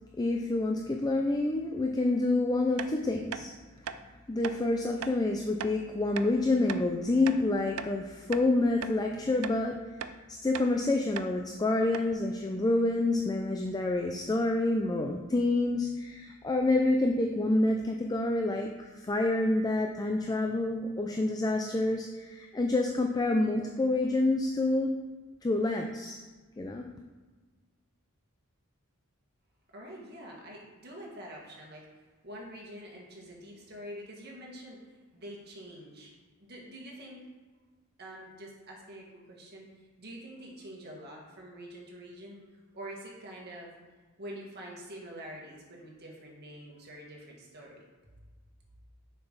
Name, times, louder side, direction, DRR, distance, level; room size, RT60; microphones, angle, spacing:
voice 1, 0.2-3.5 4.3-9.8 10.3-24.9 25.4-26.2 26.6-26.8, left 2 dB, 15° left, 2 dB, 0.4 m, -28 dB
sound 1, 2.8-2.9 3.3-3.5 3.8-4.0 4.4-4.6 5.0-5.2 5.6-5.7 6.2-6.3 6.7-6.9 7.3-8.0 8.3-8.5 8.8-9.0 9.4-9.6 10.0-10.2 10.5-10.7 11.2-11.3 11.6-11.7 11.9-12.1, right 8 dB, 70° right, 0.4 m, -38 dB
voice 2, 29.7-31.9 32.2-34.8 35.1-36.1 36.4-37.2 38.0-39.7 40.0-42.4 42.7-43.7 44.2-47.8, right 1 dB, 45° right, -2 dB, 1.7 m, -46 dB
6.7 x 6.0 x 4.0 m, 1.3 s
head